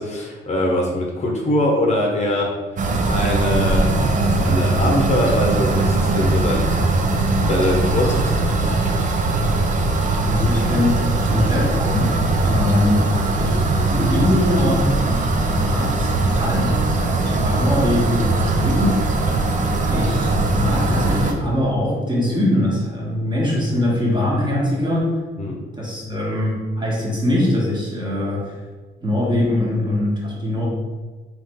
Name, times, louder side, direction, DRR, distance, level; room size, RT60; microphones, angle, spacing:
voice 1, 0.0-2.5 2.8-6.8 7.2-8.7 25.4-25.6, left 1 dB, 35° left, -1 dB, 0.8 m, -23 dB
sound 1, 2.8-21.3, right 2 dB, 40° right, 0.6 m, -20 dB
voice 2, 10.3-15.2 15.5-19.1 19.9-25.1 25.8-28.5 29.0-30.7, left 1 dB, 20° right, -4 dB, 1.4 m, -22 dB
3.8 x 3.1 x 3.5 m, 1.3 s
cardioid pair, 90°, 20 cm